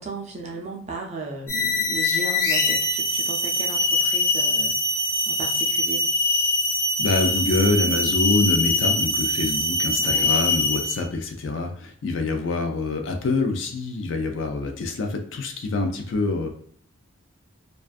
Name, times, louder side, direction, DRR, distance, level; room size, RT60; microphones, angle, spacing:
voice 1, 0.0-4.7 5.0-6.0 10.0-10.4, right 3 dB, 30° right, 0 dB, 0.4 m, -36 dB
sound 1, 1.5-11.0, left 2 dB, 75° left, 0.9 m, -23 dB
voice 2, 7.0-16.5, left 3 dB, 60° left, 4 dB, 0.4 m, -25 dB
2.4 x 2.3 x 2.3 m, 0.62 s
head